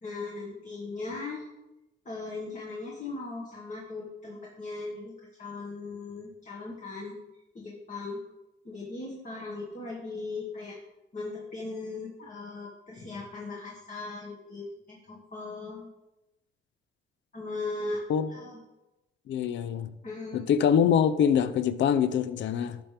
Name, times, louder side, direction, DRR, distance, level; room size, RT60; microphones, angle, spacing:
voice 1, 0.0-1.5 2.1-5.1 5.4-7.2 7.6-8.2 8.7-10.8 11.1-15.9 17.3-18.6 20.0-20.5, left 3 dB, 40° left, 1.7 m, -38 dB
voice 2, 19.3-19.9 20.3-22.8, left 8 dB, 70° left, 0.6 m, -24 dB
11.0 x 5.9 x 3.4 m
cardioid pair, 90°, 20 cm